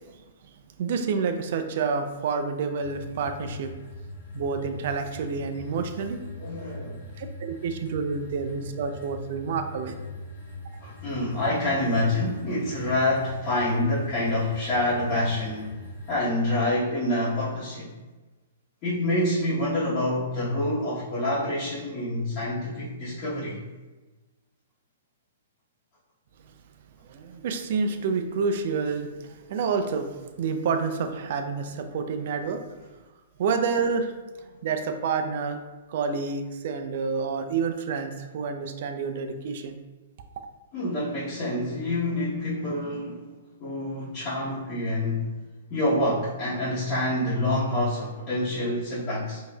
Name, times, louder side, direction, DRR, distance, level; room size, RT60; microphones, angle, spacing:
voice 1, 0.8-3.7 4.3-6.2 7.2-10.0 27.1-32.8 33.4-34.1 34.4-35.6 35.9-39.8, right 5 dB, 55° right, 7 dB, 0.4 m, -28 dB
sound 1, 2.8-16.2, left 1 dB, 65° left, 1.2 m, -40 dB
voice 2, 6.4-7.0 10.8-15.7 16.1-17.9 18.8-23.6 40.7-43.2 43.6-45.3 45.7-49.4, left 1 dB, 35° left, -10 dB, 1.0 m, -27 dB
4.5 x 2.7 x 2.3 m, 1.2 s
hypercardioid pair, 145°, 0 cm